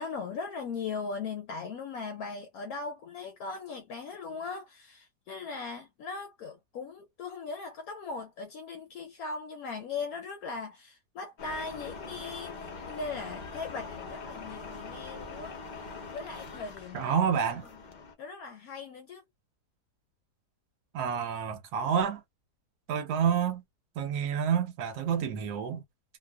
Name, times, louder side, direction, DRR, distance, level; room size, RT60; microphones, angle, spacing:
voice 1, 0.0-15.5 16.1-17.2 18.2-19.2, left 4 dB, 70° left, 1.0 m, -39 dB
sound 1, 11.4-18.1, left 4 dB, 50° left, 0.5 m, -43 dB
voice 2, 16.9-17.7 20.9-22.2 22.9-23.6 24.0-25.8, right 7 dB, 80° right, 1.3 m, -28 dB
2.7 x 2.3 x 2.2 m
omnidirectional pair, 1.7 m